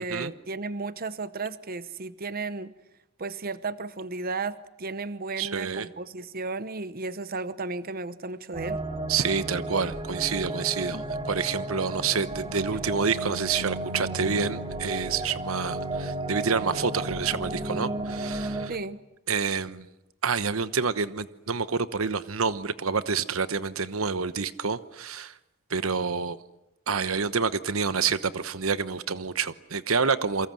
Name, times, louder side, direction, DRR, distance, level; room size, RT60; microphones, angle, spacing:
voice 1, 0.0-2.7 3.2-8.8 10.8-11.0 18.7-19.0, right 3 dB, 45° right, 14 dB, 0.9 m, -34 dB
voice 2, 5.4-5.9 9.1-11.0 11.3-18.7 19.3-19.9 20.2-25.3 25.7-26.4 26.9-30.5, right 5 dB, 90° right, 13 dB, 1.1 m, -28 dB
sound 1, 8.5-18.7, right 2 dB, 25° right, 2.4 m, -33 dB
28.5 x 23.5 x 7.8 m, 0.89 s
head